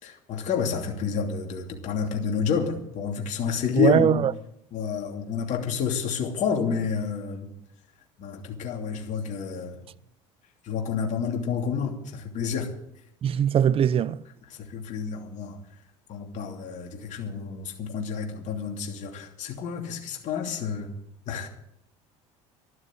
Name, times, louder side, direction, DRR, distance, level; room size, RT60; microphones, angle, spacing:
voice 1, 0.0-4.2 4.7-7.5 8.2-9.9 10.6-12.7 14.5-15.6 16.1-20.9 21.3-21.5, left 6 dB, 55° left, 2.9 m, -29 dB
voice 2, 3.8-4.3 13.2-14.2, right 9 dB, 40° right, 0.7 m, -21 dB
12.5 x 12.0 x 7.8 m
supercardioid pair, 90°, 15 cm